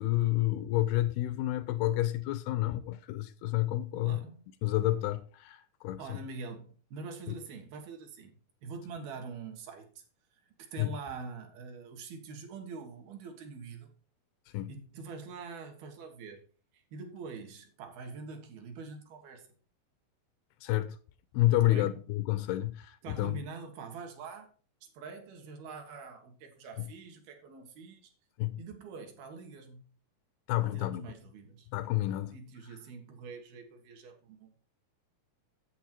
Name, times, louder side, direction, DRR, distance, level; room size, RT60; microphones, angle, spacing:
voice 1, 0.0-4.2 4.6-6.2 10.8-11.0 14.5-14.7 20.6-21.0 21.3-23.4 28.4-28.6 30.5-31.0 31.7-32.4, left 16 dB, 85° left, 2.5 m, -29 dB
voice 2, 3.9-4.4 6.0-10.0 10.6-13.9 14.7-16.4 16.7-19.5 21.6-21.9 23.0-24.5 25.0-28.1 28.6-29.9 30.6-31.7 32.3-34.5, right 4 dB, 75° right, 3.4 m, -45 dB
8.1 x 8.0 x 4.4 m
omnidirectional pair, 4.4 m